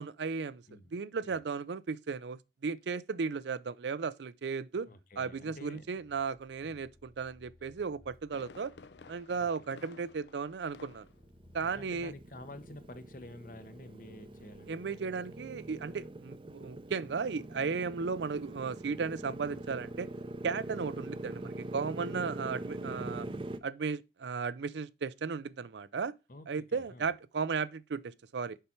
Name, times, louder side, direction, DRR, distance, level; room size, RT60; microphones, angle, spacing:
voice 1, 0.0-0.6 0.9-4.9 5.2-8.7 9.1-11.1 11.5-12.1 14.7-20.1 20.4-23.2 23.6-26.1 26.5-28.6, right 5 dB, 80° right, 0.5 m, -35 dB
voice 2, 4.9-5.8 6.6-6.9 9.4-9.5 11.6-14.8 20.6-20.9 23.1-23.3 26.3-27.1, left 1 dB, 50° left, 0.9 m, -50 dB
sound 1, 5.2-14.7, left 1 dB, 10° left, 1.2 m, -63 dB
Fireworks, 8.3-11.3 11.6-12.0 12.3-12.4, left 4 dB, 85° left, 0.5 m, -54 dB
Motorcycle, 10.9-23.6, right 1 dB, 30° right, 0.5 m, -43 dB
6.8 x 5.6 x 4.4 m
head